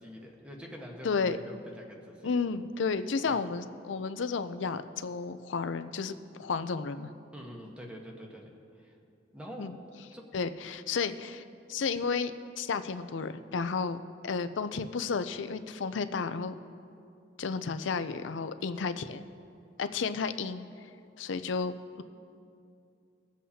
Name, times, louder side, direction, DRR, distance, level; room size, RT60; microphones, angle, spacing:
voice 1, 0.0-2.4 3.2-3.5 7.3-8.5 8.7-9.0 9.3-9.7 10.1-10.2, equal, 5° right, -1 dB, 1.2 m, -45 dB
voice 2, 1.0-1.4 2.2-7.1 9.6-9.7 10.3-11.4 11.7-12.3 12.6-14.0 14.2-16.5 17.4-19.2 19.8-20.7 21.2-22.0, left 5 dB, 85° left, 11 dB, 0.5 m, -32 dB
22.0 x 7.5 x 2.8 m, 2.5 s
head